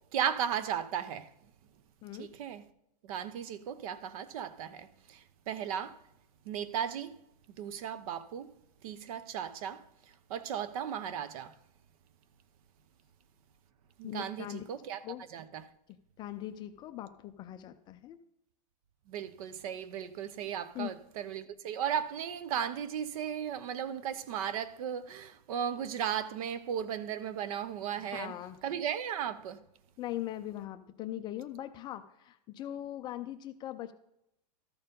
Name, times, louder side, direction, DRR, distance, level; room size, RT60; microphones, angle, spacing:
voice 1, 0.1-1.3 2.2-2.6 3.0-6.0 6.5-7.1 7.6-8.5 8.8-9.8 10.3-11.5 14.0-15.0 15.3-15.6 19.1-28.3 28.6-29.6, right 9 dB, 60° right, 0.8 m, -36 dB
voice 2, 2.0-2.3 14.0-14.7 15.0-15.2 16.2-18.2 20.7-20.9 28.0-28.6 30.0-33.9, left 13 dB, 20° left, 0.4 m, -40 dB
13.5 x 4.4 x 5.3 m
supercardioid pair, 155°, 21 cm